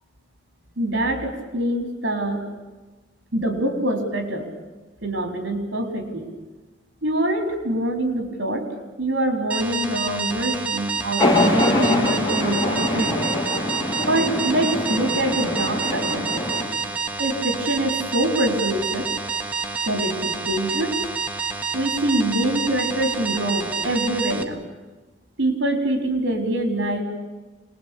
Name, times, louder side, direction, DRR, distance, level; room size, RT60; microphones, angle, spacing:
voice 1, 0.8-2.4 3.3-4.5 5.0-6.3 7.0-8.7 9.0-13.2 14.1-16.4 17.2-19.1 19.8-21.0 21.7-24.6 25.4-27.0, right 1 dB, 70° right, 5 dB, 4.3 m, -24 dB
sound 1, 9.5-24.4, right 5 dB, 10° right, 1.4 m, -28 dB
sound 2, 11.2-16.7, left 1 dB, 20° left, 4.6 m, -23 dB
26.5 x 20.0 x 8.7 m, 1.2 s
head